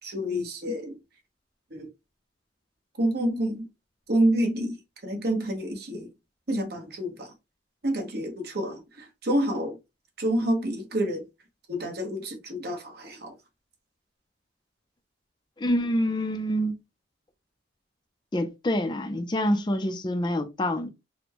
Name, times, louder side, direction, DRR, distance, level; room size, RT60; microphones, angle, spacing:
voice 1, 0.0-1.0 1.7-1.9 3.0-3.7 4.1-4.8 5.0-6.1 6.5-7.3 7.8-9.8 10.2-11.2 11.7-13.3, right 1 dB, 55° right, 1.1 m, -28 dB
voice 2, 15.6-16.7 18.3-20.9, equal, 25° left, 0.4 m, -26 dB
4.2 x 2.1 x 2.9 m
head